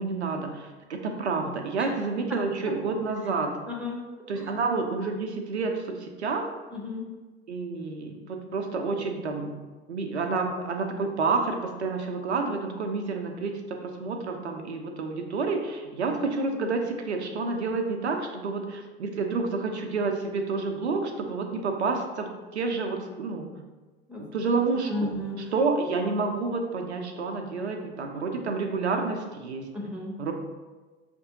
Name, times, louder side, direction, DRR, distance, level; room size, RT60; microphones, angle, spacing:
voice 1, 0.0-3.5 4.3-6.4 7.5-9.6 9.9-23.5 24.2-25.1 25.5-29.7 30.2-30.3, right 4 dB, 80° right, 4 dB, 0.6 m, -29 dB
voice 2, 3.7-4.5 6.7-7.1 24.1-24.2 24.9-25.4 29.7-30.2, left 2 dB, 5° right, -1 dB, 0.8 m, -34 dB
5.9 x 2.5 x 2.7 m, 1.3 s
figure-of-eight pair, 80°, 33 cm